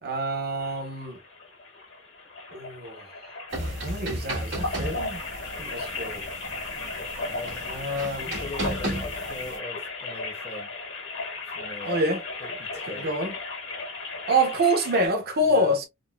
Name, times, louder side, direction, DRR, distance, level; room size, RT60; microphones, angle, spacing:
voice 1, 0.0-1.2 2.5-3.3 3.8-5.2 5.6-6.3 7.6-8.3 11.8-12.2 12.8-13.4 14.3-15.9, right 1 dB, 55° right, 0.8 m, -26 dB
sound 1, 0.6-15.1, left 3 dB, 70° left, 1.4 m, -36 dB
sound 2, 3.5-9.6, right 1 dB, 85° right, 1.7 m, -34 dB
voice 2, 7.3-7.6 8.4-10.7 11.5-12.0 12.4-13.1 15.4-15.8, left 2 dB, 30° left, 0.7 m, -39 dB
3.9 x 2.0 x 2.2 m
head